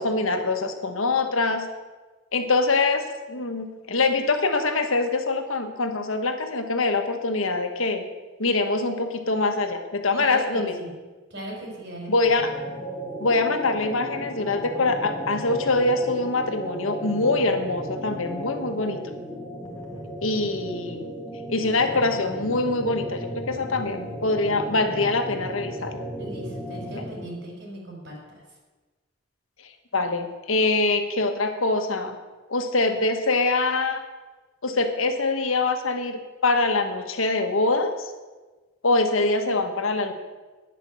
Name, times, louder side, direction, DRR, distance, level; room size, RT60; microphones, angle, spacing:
voice 1, 0.0-1.7 2.3-8.0 8.4-10.7 12.1-12.5 13.2-19.0 20.2-21.0 21.5-26.0 26.9-27.0 29.6-32.2 32.5-34.0 34.6-38.1 38.8-40.1, left 3 dB, 90° left, 6 dB, 1.5 m, -24 dB
voice 2, 10.1-10.9 11.3-12.3 26.2-28.6, right 1 dB, 60° right, -1 dB, 4.8 m, -38 dB
sound 1, 12.3-27.4, equal, 20° left, 2.8 m, -35 dB
10.5 x 10.0 x 7.0 m, 1.3 s
head